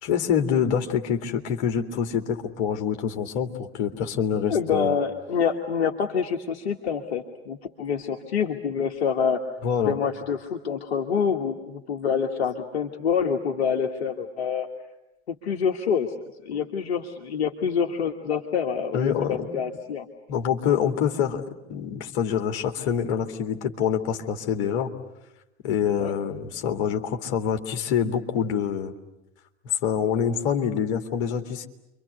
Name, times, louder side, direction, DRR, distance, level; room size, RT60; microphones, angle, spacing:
voice 1, 0.0-5.0 9.6-10.0 16.5-16.6 18.9-19.6 20.3-21.4 21.7-24.9 25.6-28.9 29.8-31.7, left 8 dB, 55° left, 5 dB, 2.4 m, -26 dB
voice 2, 4.5-9.4 9.9-14.7 15.3-16.1 16.4-20.1 26.0-26.2, left 6 dB, 70° left, 2 dB, 1.6 m, -26 dB
29.0 x 24.5 x 8.2 m, 0.94 s
figure-of-eight pair, 75°, 33 cm